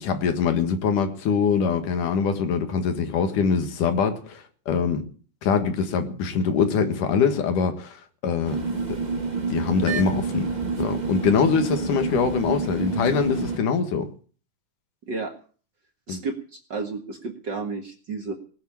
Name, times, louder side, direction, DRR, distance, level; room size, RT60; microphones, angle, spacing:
voice 1, 0.0-5.0 5.4-8.0 8.2-8.6 8.9-9.0 9.5-10.5 10.8-14.1 16.1-16.2, left 6 dB, 80° left, 3.2 m, -23 dB
sound 1, 8.4-13.6, right 4 dB, 20° right, 1.3 m, -28 dB
voice 2, 16.1-18.3, right 4 dB, 40° right, 1.8 m, -32 dB
20.0 x 7.1 x 8.8 m
omnidirectional pair, 3.6 m